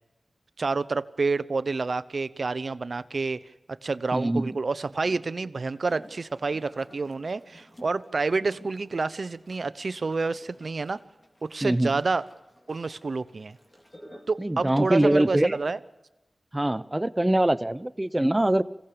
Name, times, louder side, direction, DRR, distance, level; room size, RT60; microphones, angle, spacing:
voice 1, 0.6-3.4 3.8-11.0 11.4-12.3 12.7-13.6 14.3-15.8, right 3 dB, 65° right, 16 dB, 0.9 m, -28 dB
voice 2, 4.1-4.5 11.6-12.0 14.4-15.6 16.5-18.6, right 1 dB, 20° right, 15 dB, 0.9 m, -23 dB
sound 1, 5.6-14.5, equal, 20° left, 4.2 m, -53 dB
26.0 x 17.0 x 7.0 m, 0.96 s
cardioid pair, 50°, 0 cm